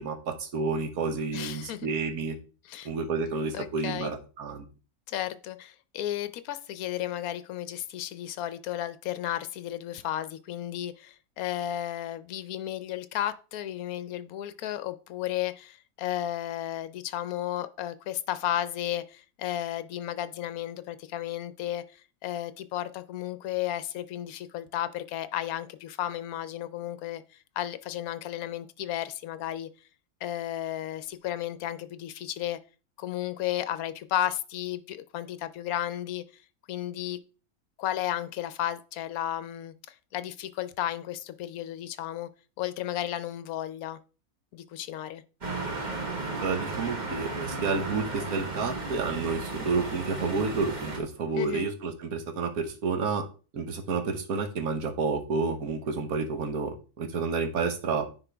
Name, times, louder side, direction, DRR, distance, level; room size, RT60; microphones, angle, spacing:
voice 1, 0.0-2.4 2.8-4.6 46.4-53.2 53.5-58.1, right 4 dB, 70° right, 1.5 m, -30 dB
voice 2, 1.3-1.9 2.6-2.9 3.5-4.1 5.1-27.2 27.6-29.7 30.2-32.6 33.0-36.2 36.7-37.2 37.8-42.3 42.6-44.0 44.5-45.2 51.4-51.7, left 12 dB, 70° left, 1.1 m, -33 dB
sound 1, 45.4-51.0, right 3 dB, 30° right, 1.5 m, -34 dB
9.8 x 4.4 x 3.4 m
omnidirectional pair, 1.7 m